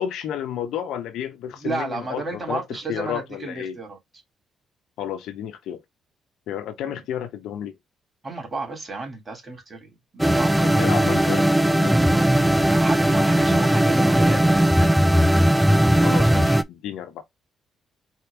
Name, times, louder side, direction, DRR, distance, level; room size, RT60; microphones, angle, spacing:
voice 1, 0.0-3.8 5.0-5.8 6.5-7.8 10.5-12.0 16.0-17.2, left 10 dB, 85° left, 1.0 m, -31 dB
voice 2, 1.6-4.0 6.9-7.0 8.2-10.7 12.7-15.0, right 3 dB, 30° right, 2.9 m, -32 dB
sound 1, 10.2-16.6, right 1 dB, 5° right, 0.4 m, -18 dB
4.6 x 3.0 x 3.4 m
cardioid pair, 90°, 0 cm